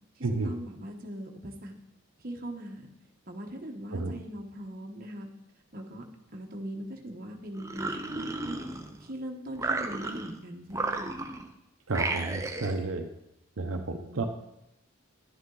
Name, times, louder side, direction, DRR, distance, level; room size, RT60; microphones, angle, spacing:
voice 1, 0.2-1.8 2.2-2.9 3.3-5.3 5.7-6.0 6.3-8.6 9.0-11.2 13.7-14.2, right 1 dB, 40° right, 2 dB, 1.0 m, -40 dB
sound 1, 7.6-9.1 9.6-10.4 10.7-11.5 11.9-12.8, right 2 dB, 15° right, 0.5 m, -33 dB
voice 2, 11.9-13.1 13.6-14.2, right 3 dB, 70° right, 3 dB, 0.8 m, -31 dB
11.0 x 8.3 x 3.9 m, 0.85 s
head